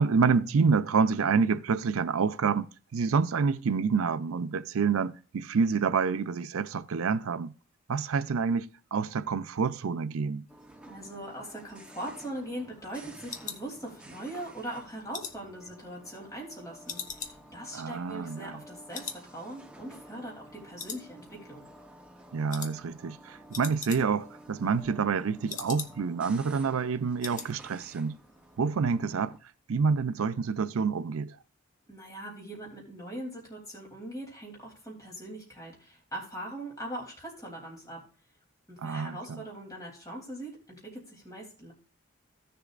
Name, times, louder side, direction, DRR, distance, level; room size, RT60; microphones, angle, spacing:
voice 1, 0.0-7.5 7.9-10.5 17.7-18.6 22.3-28.2 28.6-29.4 29.7-31.4 38.8-39.4, right 5 dB, 85° right, 0.5 m, -28 dB
sound 1, 10.5-29.4, right 1 dB, 5° right, 0.9 m, -52 dB
voice 2, 10.9-21.6 31.9-38.0 38.7-41.7, right 1 dB, 15° left, 3.0 m, -41 dB
sound 2, 11.6-14.3 14.7-16.5 16.9-18.7 18.9-19.3 19.5-19.6 20.1-20.5 20.8-21.6 21.8-22.1 22.5-22.8 23.1-23.2 23.4-24.3 24.6-26.2 26.5-26.6 26.9-27.5 27.8-28.1 28.4-28.5, left 6 dB, 35° left, 0.8 m, -42 dB
16.0 x 6.8 x 2.5 m
head